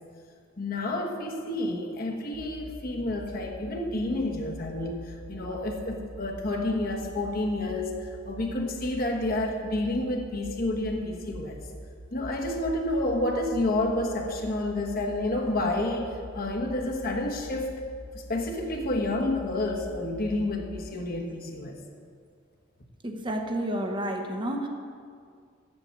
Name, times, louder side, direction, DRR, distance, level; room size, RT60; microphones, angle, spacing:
voice 1, 0.6-11.6 12.1-17.8 18.1-21.8, left 1 dB, 50° left, 2 dB, 1.2 m, -29 dB
sound 1, 2.3-20.9, equal, 70° right, 1.1 m, -44 dB
voice 2, 23.0-24.7, right 1 dB, 25° right, 3 dB, 0.8 m, -30 dB
8.2 x 7.8 x 7.6 m, 2.2 s
head